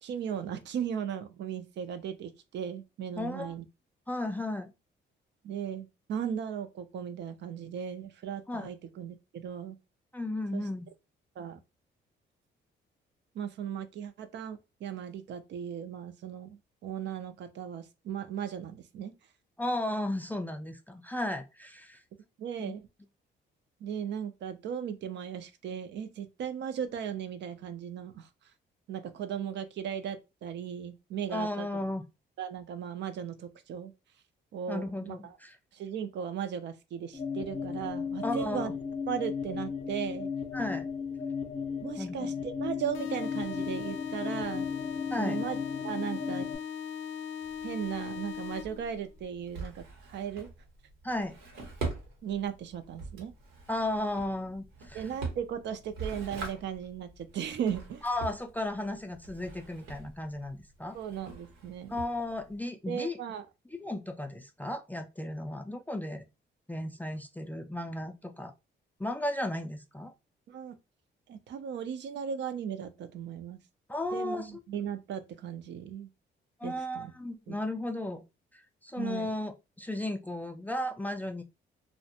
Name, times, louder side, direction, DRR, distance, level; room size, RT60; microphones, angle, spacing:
voice 1, 0.0-3.6 5.4-9.8 10.5-10.6 11.4-11.6 13.4-19.1 22.4-22.9 23.8-28.3 28.9-31.7 32.4-33.9 34.5-35.3 35.7-38.7 39.1-40.3 41.8-44.7 45.2-45.6 45.8-46.5 47.6-50.5 52.2-53.3 54.9-58.0 60.9-61.9 62.9-63.4 70.5-70.8 71.3-73.6 74.1-76.1 76.6-77.1 77.5-77.6 79.0-79.3, right 8 dB, 65° right, 0.4 m, -37 dB
voice 2, 3.2-3.5 4.1-4.7 8.5-8.7 10.1-10.9 19.6-22.0 22.6-22.7 31.3-32.0 34.7-35.6 38.2-38.7 40.5-40.9 42.0-42.3 45.1-45.4 51.0-51.3 53.7-55.1 58.0-61.0 61.9-63.2 63.7-66.3 66.7-68.5 69.0-70.1 73.9-74.6 76.6-78.2 78.5-81.4, left 1 dB, 10° left, 0.3 m, -35 dB
sound 1, 37.1-46.6, left 6 dB, 35° left, 0.7 m, -35 dB
sound 2, 42.9-48.9, left 8 dB, 75° left, 0.4 m, -39 dB
Drawer open or close, 47.4-62.6, right 4 dB, 85° right, 1.0 m, -43 dB
2.4 x 2.1 x 2.7 m
cardioid pair, 90°, 20 cm